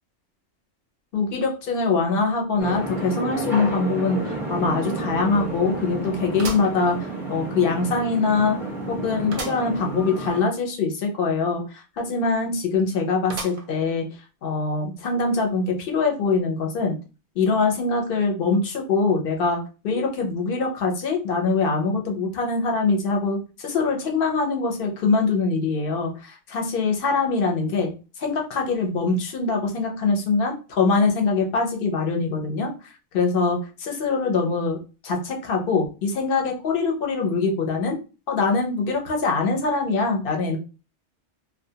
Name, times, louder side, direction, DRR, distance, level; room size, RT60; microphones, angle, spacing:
voice 1, 1.1-8.6 8.9-14.0 14.4-16.9 17.4-19.6 19.8-27.9 28.2-32.7 33.1-34.8 35.0-38.0 38.3-40.6, left 4 dB, 55° left, 2 dB, 0.7 m, -23 dB
sound 1, 2.6-10.4, right 2 dB, 5° right, 0.5 m, -31 dB
sound 2, 4.1-4.2 4.7-4.8 6.4-7.5 8.0-8.1 9.3-9.7 10.1-10.2 10.4-10.5 13.3-13.9 14.5-14.6 15.6-15.7, right 3 dB, 55° right, 0.6 m, -36 dB
2.3 x 2.1 x 2.7 m, 0.33 s
omnidirectional pair, 1.2 m